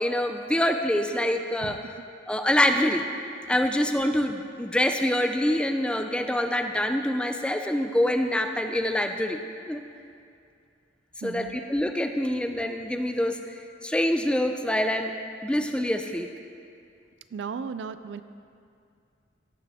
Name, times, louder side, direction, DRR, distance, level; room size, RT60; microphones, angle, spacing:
voice 1, 0.0-1.8 2.3-3.0 3.5-9.4 9.7-9.8 11.2-13.4 13.8-15.1 15.4-16.3, left 1 dB, 5° left, 5 dB, 0.4 m, -25 dB
voice 2, 11.2-11.6 17.3-18.2, right 5 dB, 70° right, 12 dB, 0.3 m, -35 dB
16.5 x 5.9 x 3.5 m, 2.4 s
head